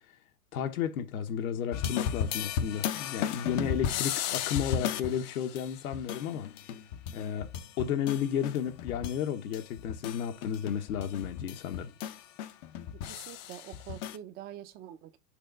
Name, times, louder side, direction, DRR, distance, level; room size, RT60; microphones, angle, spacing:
voice 1, 0.5-6.5 7.1-7.5 7.8-11.9, left 8 dB, 70° left, 1.1 m, -33 dB
sound 1, 1.7-9.2 9.5-14.2, left 9 dB, 30° left, 0.5 m, -35 dB
voice 2, 12.9-15.2, right 12 dB, 20° right, 0.5 m, -46 dB
6.6 x 3.2 x 5.1 m
hypercardioid pair, 140°, 45 cm